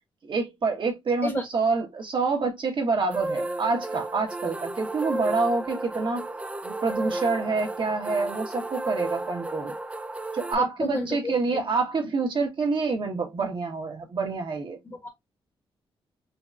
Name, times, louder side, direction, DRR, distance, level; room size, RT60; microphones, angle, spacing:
voice 1, 0.2-6.3 6.6-9.7 10.3-14.8, right 4 dB, 55° right, 1.4 m, -27 dB
sound 1, 3.1-10.6, right 2 dB, 15° right, 0.4 m, -33 dB
voice 2, 10.5-11.6 14.8-15.1, left 1 dB, 25° left, 1.1 m, -32 dB
4.0 x 3.1 x 2.5 m
cardioid pair, 85°, 10 cm